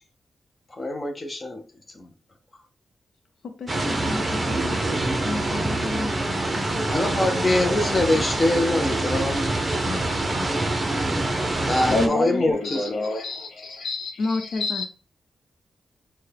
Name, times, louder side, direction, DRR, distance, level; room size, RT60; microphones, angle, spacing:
voice 1, 0.7-1.6 1.9-2.1 6.9-9.4 11.7-12.9, left 2 dB, 20° left, 0.5 m, -24 dB
voice 2, 3.4-4.8 5.2-8.1 9.8-10.5 14.2-14.8, left 3 dB, 80° left, 0.5 m, -33 dB
sound 1, 3.7-12.1, right 2 dB, 20° right, 0.7 m, -25 dB
voice 3, 11.9-14.8, left 2 dB, 60° left, 1.0 m, -27 dB
6.4 x 2.2 x 3.3 m
wide cardioid pair, 180°, 0 cm